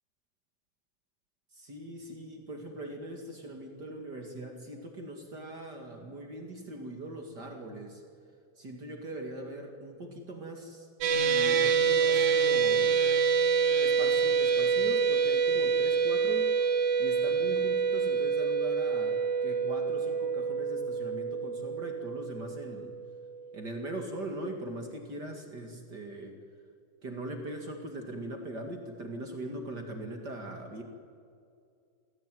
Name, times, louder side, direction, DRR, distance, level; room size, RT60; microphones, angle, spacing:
voice 1, 1.5-8.0 8.6-10.9 11.1-13.0 13.8-16.5 17.0-22.9 23.5-26.4 27.0-30.8, right 1 dB, 40° right, 3 dB, 1.5 m, -41 dB
sound 1, 11.0-23.4, right 6 dB, 85° right, 4.6 m, -27 dB
28.0 x 18.0 x 9.3 m, 2.3 s
omnidirectional pair, 5.6 m